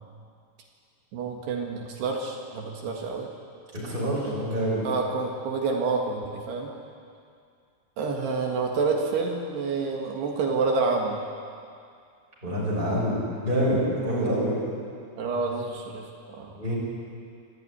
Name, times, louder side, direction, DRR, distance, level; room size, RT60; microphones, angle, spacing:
voice 1, 1.1-3.3 4.3-4.4 4.8-6.7 8.0-11.2 14.0-14.3 15.2-16.5, right 4 dB, 70° right, 1 dB, 3.8 m, -28 dB
voice 2, 3.7-4.9 12.4-14.6 16.5-16.7, equal, 10° right, -6 dB, 6.2 m, -26 dB
24.5 x 15.0 x 9.9 m, 2.3 s
omnidirectional pair, 5.1 m